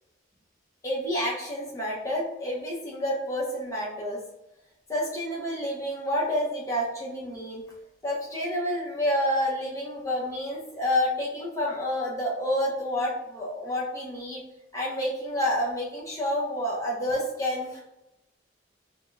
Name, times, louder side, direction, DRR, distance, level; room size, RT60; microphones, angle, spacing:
voice 1, 0.8-4.2 4.9-7.6 8.0-14.4 14.7-17.8, left 1 dB, 20° left, -5 dB, 0.8 m, -29 dB
4.8 x 2.3 x 2.5 m, 0.90 s
head